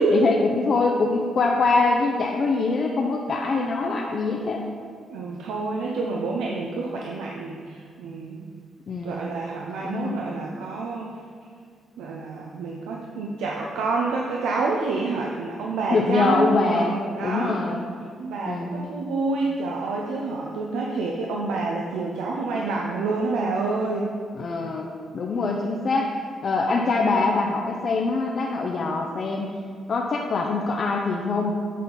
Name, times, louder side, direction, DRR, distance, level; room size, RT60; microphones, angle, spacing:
voice 1, 0.1-4.6 8.9-9.2 9.8-10.3 15.9-16.9 17.2-17.8 18.5-18.9 24.3-26.1 26.4-29.5 29.9-31.5, left 3 dB, 55° left, 0 dB, 0.5 m, -24 dB
voice 2, 5.1-8.5 9.0-11.1 12.0-17.6 18.2-24.1, right 3 dB, 90° right, -1 dB, 0.5 m, -28 dB
8.2 x 4.2 x 3.8 m, 2.1 s
cardioid pair, 80°, 0 cm